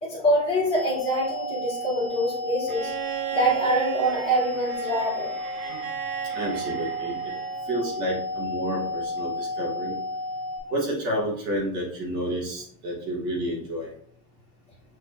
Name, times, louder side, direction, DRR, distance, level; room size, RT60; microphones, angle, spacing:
voice 1, 0.0-2.9 3.3-5.3, right 1 dB, 15° left, -7 dB, 1.7 m, -25 dB
sound 1, 0.7-10.6, equal, 35° left, 1.4 m, -33 dB
Bowed string instrument, 2.7-7.7 9.2-9.3, right 8 dB, 85° right, 0.9 m, -36 dB
voice 2, 6.3-7.3 7.7-9.9 10.7-13.9, right 1 dB, 15° right, -3 dB, 0.3 m, -30 dB
6.2 x 3.2 x 2.5 m, 0.62 s
supercardioid pair, 180°, 42 cm